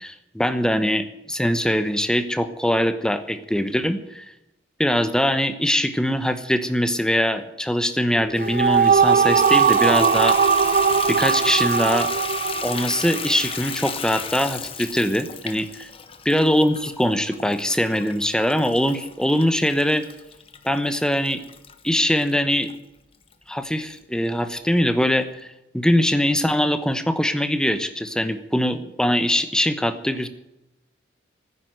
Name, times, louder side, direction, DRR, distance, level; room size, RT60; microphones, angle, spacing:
voice 1, 0.0-4.3 4.8-10.4 11.1-12.1 12.6-15.9 16.2-20.0 20.6-21.4 21.8-22.7 23.5-25.3 25.7-30.3, equal, 5° left, 10 dB, 0.9 m, -22 dB
sound 1, 8.2-13.7, right 6 dB, 45° right, 0.4 m, -19 dB
Water tap faucet / Bathtub (filling or washing), 8.4-22.7 23.3-23.4 23.9-24.0 24.3-24.4, left 7 dB, 30° left, 1.0 m, -35 dB
14.0 x 10.0 x 7.7 m, 0.91 s
head